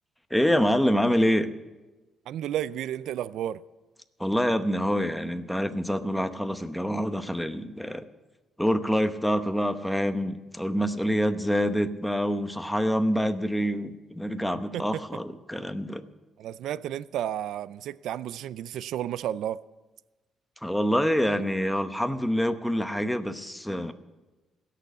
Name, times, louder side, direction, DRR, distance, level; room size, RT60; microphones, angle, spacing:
voice 1, 0.3-1.5 4.2-8.1 8.6-16.0 20.6-23.9, equal, 5° left, 0.9 m, -26 dB
voice 2, 2.3-3.6 14.7-15.0 16.4-19.6, right 11 dB, 80° right, 0.4 m, -32 dB
16.5 x 6.8 x 8.1 m
cardioid pair, 90°, 0 cm